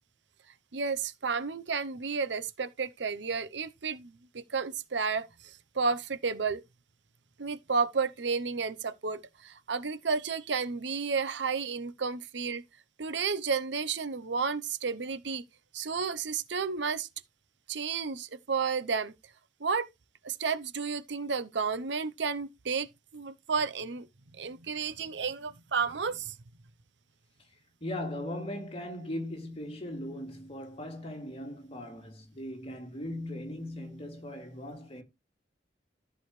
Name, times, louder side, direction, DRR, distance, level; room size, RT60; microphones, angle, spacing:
voice 1, 0.7-6.6 7.4-12.6 13.0-15.4 15.7-17.1 17.7-19.1 19.6-19.9 20.2-22.9 23.1-24.1 24.3-26.3, right 5 dB, 65° right, 0.8 m, -32 dB
voice 2, 27.8-35.0, left 1 dB, 30° left, 2.6 m, -39 dB
13.5 x 6.3 x 3.2 m
head